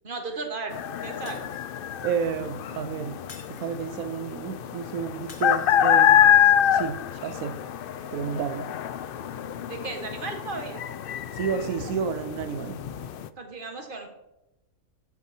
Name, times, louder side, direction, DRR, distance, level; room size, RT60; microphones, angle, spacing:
voice 1, 0.0-0.8 1.0-1.5 9.7-10.8 13.4-14.1, right 3 dB, 40° right, 1.7 m, -35 dB
sound 1, 0.7-13.3, left 10 dB, 65° left, 0.5 m, -25 dB
Shatter, 1.3-2.0 3.3-4.1 5.3-6.1, left 4 dB, 40° left, 1.1 m, -49 dB
voice 2, 2.0-3.2 3.5-6.3 6.7-7.6 8.1-8.7 11.3-12.8, right 7 dB, 85° right, 1.1 m, -31 dB
10.5 x 8.6 x 4.4 m
omnidirectional pair, 1.4 m